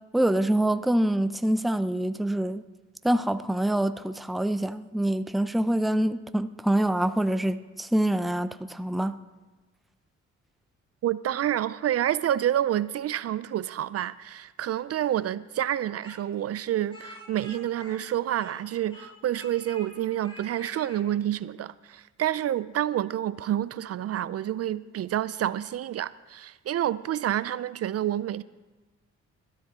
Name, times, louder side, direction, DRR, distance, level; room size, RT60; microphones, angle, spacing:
voice 1, 0.1-2.7 3.0-9.2, right 1 dB, ahead, 0.5 m, -25 dB
voice 2, 11.0-28.4, right 11 dB, 55° right, 0.5 m, -28 dB
Speech, 16.0-18.6 18.9-19.9 20.2-21.0, equal, 15° left, 5.3 m, -47 dB
21.0 x 12.5 x 3.7 m
cardioid pair, 90°, 30 cm